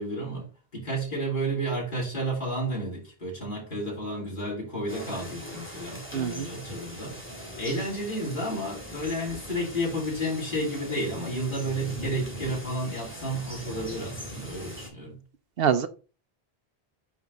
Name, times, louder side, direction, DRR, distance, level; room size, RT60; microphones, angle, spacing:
voice 1, 0.0-15.2, right 1 dB, 55° left, 3.4 m, -31 dB
sound 1, 4.9-14.9, equal, 10° left, 2.1 m, -40 dB
voice 2, 6.1-6.5 15.6-15.9, right 8 dB, 70° right, 0.9 m, -24 dB
9.2 x 3.6 x 4.0 m
omnidirectional pair, 1.1 m